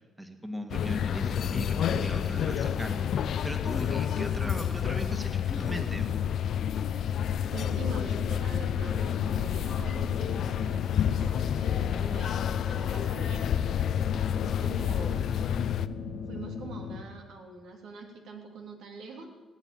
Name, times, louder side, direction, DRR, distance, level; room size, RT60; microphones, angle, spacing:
voice 1, 0.0-6.1 14.5-14.7, equal, 10° right, 5 dB, 2.0 m, -38 dB
sound 1, 0.7-15.9, left 9 dB, 65° left, 0.6 m, -29 dB
voice 2, 7.5-13.4 14.4-15.3 16.3-19.3, right 3 dB, 80° right, 2 dB, 3.1 m, -43 dB
sound 2, 7.8-17.0, left 5 dB, 85° left, 1.6 m, -39 dB
17.0 x 9.1 x 8.9 m, 1.3 s
cardioid pair, 90°, 0 cm